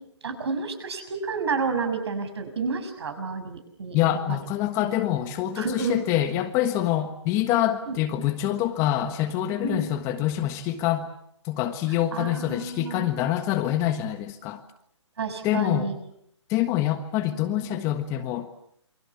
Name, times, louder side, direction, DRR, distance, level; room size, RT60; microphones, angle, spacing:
voice 1, 0.2-4.4 5.6-6.0 7.9-8.0 9.6-9.9 12.1-13.1 15.2-15.9, right 4 dB, 60° right, 8 dB, 6.8 m, -30 dB
voice 2, 3.9-11.1 11.4-14.6 15.4-15.9 16.5-18.6, left 12 dB, 20° left, 8 dB, 1.4 m, -26 dB
28.5 x 24.5 x 7.2 m, 0.73 s
hypercardioid pair, 155°, 16 cm